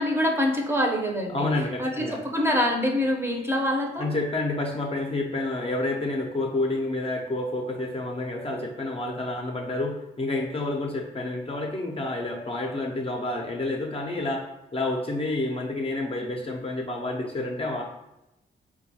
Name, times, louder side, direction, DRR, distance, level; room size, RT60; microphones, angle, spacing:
voice 1, 0.0-1.5 1.8-4.1, left 1 dB, 10° right, 0 dB, 0.6 m, -25 dB
voice 2, 1.3-2.2 4.0-14.5 14.7-17.8, left 2 dB, 30° left, 0 dB, 0.5 m, -29 dB
3.8 x 2.2 x 2.7 m, 0.90 s
supercardioid pair, 45°, 20 cm